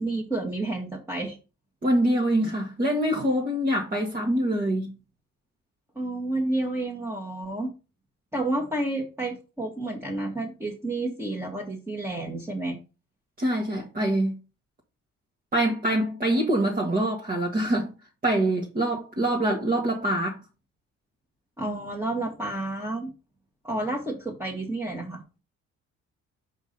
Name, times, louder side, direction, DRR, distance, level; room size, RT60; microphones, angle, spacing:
voice 1, 0.0-1.4 6.0-7.7 8.3-12.8 21.6-23.1 23.6-25.2, right 2 dB, 10° right, 1.6 m, -30 dB
voice 2, 1.8-4.9 13.4-14.4 15.5-17.9 18.2-20.4, right 1 dB, 30° right, 1.6 m, -24 dB
5.2 x 4.1 x 5.2 m
cardioid pair, 90°, 30 cm